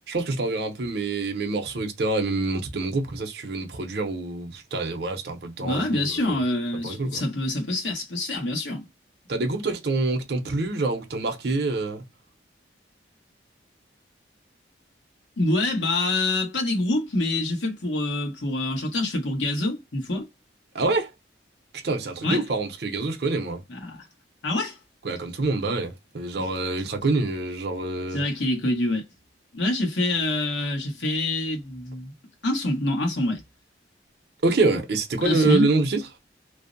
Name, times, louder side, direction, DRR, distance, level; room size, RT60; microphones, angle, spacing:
voice 1, 0.1-6.4 6.8-7.2 9.3-12.0 20.7-21.1 21.7-23.6 25.0-28.2 34.4-36.0, right 3 dB, 55° right, 0.6 m, -26 dB
voice 2, 5.6-8.8 15.4-20.3 22.2-22.4 23.7-24.0 24.4-24.8 28.1-29.0 29.5-32.1 32.4-33.4 35.2-35.7, left 2 dB, 70° left, 1.1 m, -26 dB
2.6 x 2.0 x 2.5 m
head